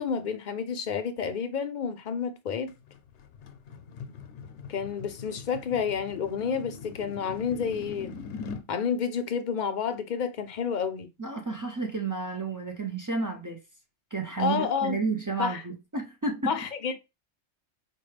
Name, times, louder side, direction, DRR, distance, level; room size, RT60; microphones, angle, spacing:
voice 1, 0.0-2.7 4.7-8.2 8.7-11.1 14.4-15.0 15.4-15.6 16.5-17.0, left 6 dB, 55° left, 0.6 m, -30 dB
sound 1, 2.7-8.7, left 5 dB, 80° left, 0.9 m, -42 dB
voice 2, 11.2-13.6 14.1-16.6, right 4 dB, 30° right, 0.3 m, -31 dB
4.4 x 2.2 x 3.2 m
omnidirectional pair, 1.2 m